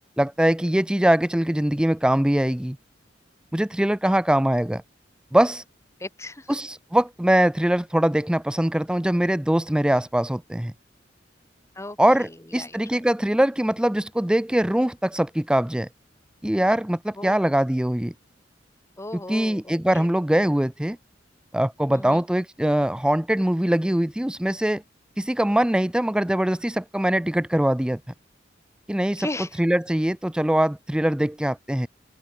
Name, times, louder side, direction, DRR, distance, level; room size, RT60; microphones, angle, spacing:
voice 1, 0.2-2.8 3.5-4.8 5.3-5.6 6.5-10.7 12.0-15.9 16.4-18.1 19.3-21.0 21.5-24.8 25.2-28.0 28.9-29.3 29.6-31.9, right 1 dB, 5° right, 0.4 m, -22 dB
voice 2, 6.0-6.6 11.7-13.0 17.2-17.5 19.0-20.1 21.9-22.3 29.2-29.6, left 2 dB, 15° left, 1.6 m, -37 dB
open air
head